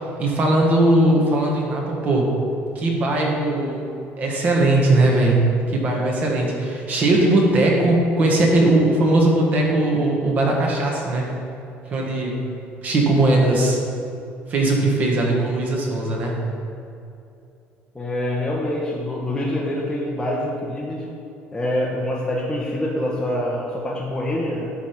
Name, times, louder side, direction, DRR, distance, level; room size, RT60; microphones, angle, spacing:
voice 1, 0.2-2.3 2.7-3.8 4.2-11.3 11.9-12.4 12.8-13.8 14.5-16.4, right 2 dB, 35° right, -1 dB, 1.6 m, -19 dB
voice 2, 17.9-21.1 21.5-24.7, left 1 dB, 10° left, -5 dB, 0.9 m, -25 dB
10.5 x 3.5 x 5.9 m, 2.7 s
cardioid pair, 145°, 4 cm